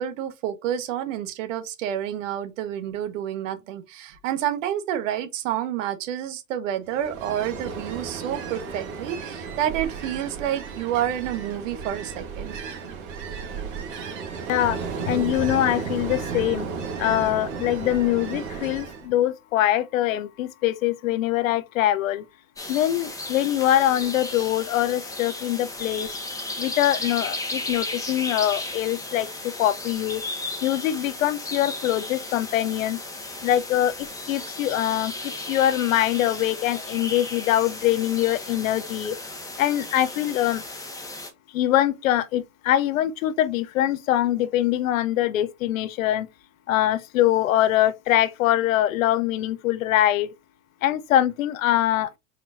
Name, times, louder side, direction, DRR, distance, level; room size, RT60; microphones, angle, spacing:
voice 1, 0.0-12.6, right 11 dB, 65° right, 1.2 m, -29 dB
Ocean, 6.9-19.1, right 5 dB, 45° right, 2.3 m, -33 dB
voice 2, 15.1-16.7 17.0-22.2 22.7-26.1 26.6-29.3 29.6-30.2 30.6-33.0 33.4-39.2 39.6-40.6 41.5-46.3 46.7-50.3 50.8-52.1, left 13 dB, 75° left, 0.7 m, -23 dB
sound 1, 22.6-41.3, left 2 dB, 10° left, 1.3 m, -35 dB
4.4 x 4.3 x 2.5 m
hypercardioid pair, 100°, 41 cm